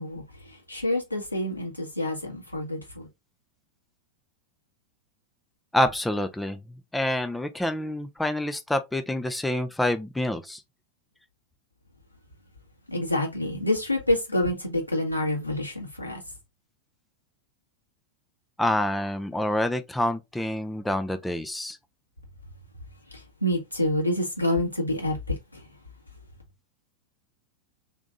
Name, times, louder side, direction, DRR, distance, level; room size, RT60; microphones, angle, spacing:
voice 1, 0.0-3.1 12.9-16.2 23.1-25.7, left 1 dB, 85° left, 1.8 m, -28 dB
voice 2, 5.7-10.6 18.6-21.8, left 1 dB, 5° left, 0.6 m, -27 dB
3.6 x 3.6 x 3.8 m
figure-of-eight pair, 90°, 0 cm